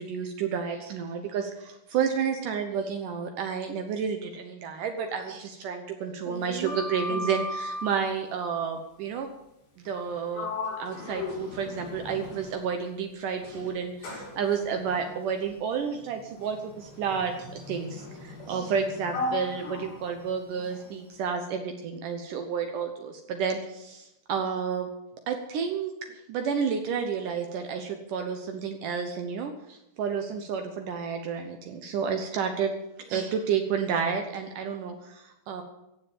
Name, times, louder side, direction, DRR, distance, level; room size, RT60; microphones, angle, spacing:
voice 1, 0.0-9.3 9.8-10.5 10.8-24.9 25.3-32.7 33.0-35.6, right 6 dB, 70° right, 5 dB, 2.4 m, -31 dB
Sliding door, 6.4-8.0 9.9-10.1 10.3-12.8 13.4-20.9, left 2 dB, 85° left, 6.7 m, -37 dB
16.0 x 7.5 x 8.6 m, 0.89 s
omnidirectional pair, 4.2 m